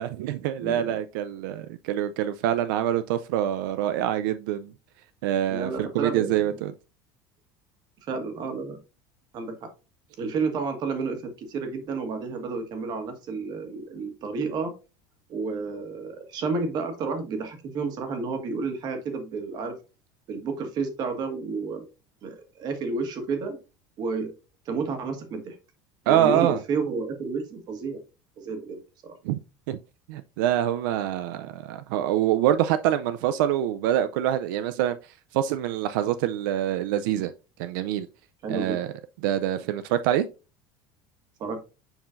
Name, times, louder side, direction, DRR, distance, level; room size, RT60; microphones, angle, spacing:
voice 1, 0.0-4.7 5.2-6.7 26.1-26.6 29.2-29.4 29.7-29.8 30.1-35.0 35.3-37.3 37.6-38.1 38.5-38.9 39.2-40.3, right 11 dB, 90° right, 0.4 m, -25 dB
voice 2, 0.6-1.0 5.5-6.7 8.0-8.8 9.3-9.7 10.2-14.7 15.3-19.8 20.3-21.9 22.2-23.6 24.0-24.3 24.6-25.6 26.1-28.0 28.4-29.1 38.4-38.8 41.4-41.6, right 4 dB, 40° right, 1.4 m, -31 dB
7.0 x 5.6 x 2.5 m
cardioid pair, 155°, 11 cm